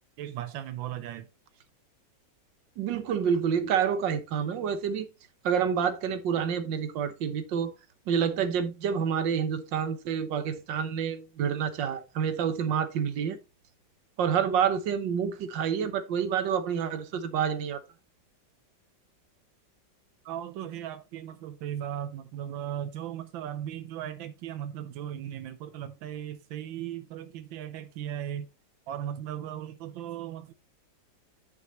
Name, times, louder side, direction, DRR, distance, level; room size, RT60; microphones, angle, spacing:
voice 1, 0.2-1.3 20.2-28.5 28.9-30.5, right 10 dB, 90° right, 1.5 m, -37 dB
voice 2, 2.8-5.1 5.4-7.7 8.1-13.4 14.2-17.8, right 7 dB, 75° right, 1.7 m, -28 dB
9.8 x 6.1 x 3.0 m
omnidirectional pair, 2.1 m